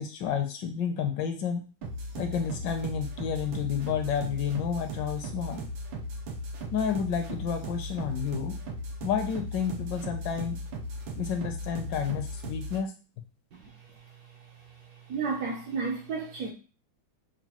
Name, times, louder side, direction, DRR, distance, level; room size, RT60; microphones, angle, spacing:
voice 1, 0.0-1.6 2.2-5.6 6.7-8.6 9.0-10.6 11.1-12.9, left 7 dB, 75° left, 1.1 m, -30 dB
sound 1, 1.8-12.8, equal, 90° right, 1.6 m, -37 dB
voice 2, 15.1-16.5, right 4 dB, 70° right, 0.9 m, -31 dB
5.9 x 2.3 x 2.9 m
omnidirectional pair, 2.2 m